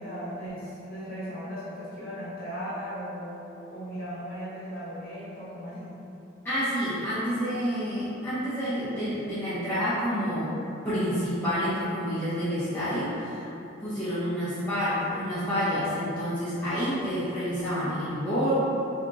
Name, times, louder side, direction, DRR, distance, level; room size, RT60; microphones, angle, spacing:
voice 1, 0.0-6.0, equal, 50° left, -10 dB, 1.2 m, -37 dB
voice 2, 6.4-10.5 10.8-13.5 13.8-18.5, equal, 10° left, -15 dB, 0.8 m, -28 dB
3.6 x 3.4 x 2.5 m, 2.9 s
head